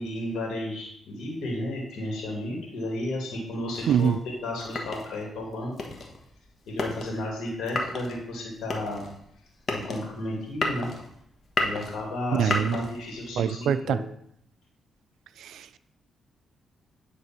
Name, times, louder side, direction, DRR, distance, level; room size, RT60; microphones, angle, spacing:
voice 1, 0.0-5.7 6.7-9.1 9.7-10.9 11.6-14.0, left 1 dB, 80° left, -1 dB, 2.3 m, -33 dB
sound 1, 3.7-13.3, left 2 dB, 50° left, 1.2 m, -34 dB
voice 2, 3.9-4.2 12.3-12.8 13.4-14.0 15.4-15.8, right 8 dB, 80° right, 14 dB, 0.3 m, -24 dB
9.4 x 3.4 x 4.4 m, 0.72 s
supercardioid pair, 60°, 0 cm